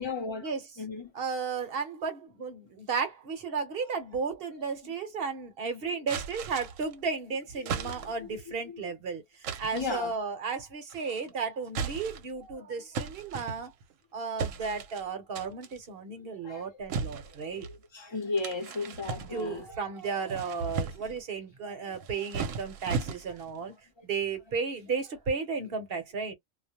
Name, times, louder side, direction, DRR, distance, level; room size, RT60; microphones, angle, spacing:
voice 1, 0.0-0.4 0.8-1.1 7.7-8.3 8.7-8.8 9.7-10.1 16.3-16.7 17.5-19.7 22.4-22.5 24.0-24.1, left 4 dB, 25° left, 0.7 m, -35 dB
voice 2, 1.1-9.2 9.6-13.7 14.1-17.7 19.2-23.7 24.0-26.3, right 5 dB, 50° right, 0.9 m, -34 dB
sound 1, 6.1-6.9 7.7-8.3 9.4-9.9 10.9-11.3 11.7-12.4 12.9-13.9 14.4-15.0 15.4-15.8 16.9-17.8 18.4-19.6 20.1-21.2 21.9-23.5, right 5 dB, 80° right, 1.0 m, -36 dB
2.4 x 2.1 x 2.8 m
omnidirectional pair, 1.3 m